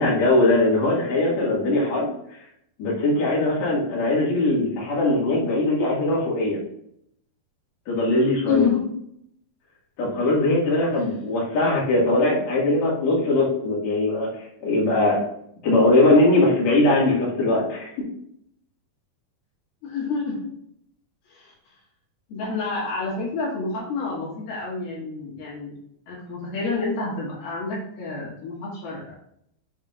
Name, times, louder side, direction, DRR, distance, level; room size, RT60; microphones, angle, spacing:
voice 1, 0.0-2.1 2.8-6.6 7.9-8.6 10.0-15.2 15.6-17.9, left 2 dB, 50° left, -5 dB, 3.0 m, -20 dB
voice 2, 8.5-8.8 11.6-11.8 12.2-12.4 19.8-20.5 21.3-21.5 22.3-25.8 26.1-29.2, left 4 dB, 70° left, -5 dB, 3.5 m, -28 dB
7.2 x 5.2 x 2.5 m, 0.71 s
omnidirectional pair, 4.8 m